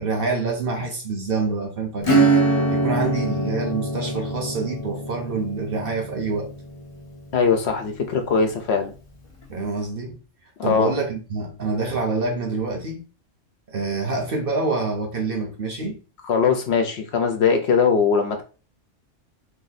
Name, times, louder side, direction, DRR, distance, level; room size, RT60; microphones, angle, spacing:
voice 1, 0.0-2.3 2.7-6.5 9.5-10.2 10.6-13.0 13.7-16.0, right 3 dB, 50° right, 0.9 m, -26 dB
Acoustic guitar / Strum, 2.0-8.3, right 2 dB, 40° left, 0.5 m, -24 dB
voice 2, 7.3-8.9 10.6-10.9 16.3-18.4, left 5 dB, 65° left, 0.8 m, -20 dB
2.8 x 2.6 x 4.0 m
omnidirectional pair, 1.3 m